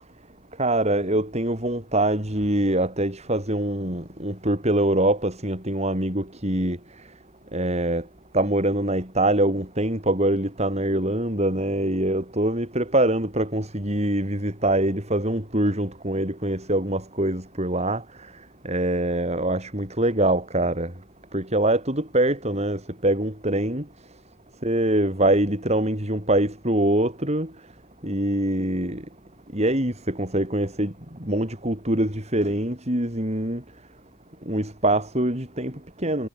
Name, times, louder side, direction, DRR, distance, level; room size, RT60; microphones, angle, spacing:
voice 1, 0.6-6.8 7.5-8.0 8.3-18.0 18.6-20.9 21.3-23.8 24.6-27.5 28.0-29.0 29.5-30.9 31.2-33.6 34.5-36.3, right 1 dB, 35° right, 8.0 m, -24 dB
head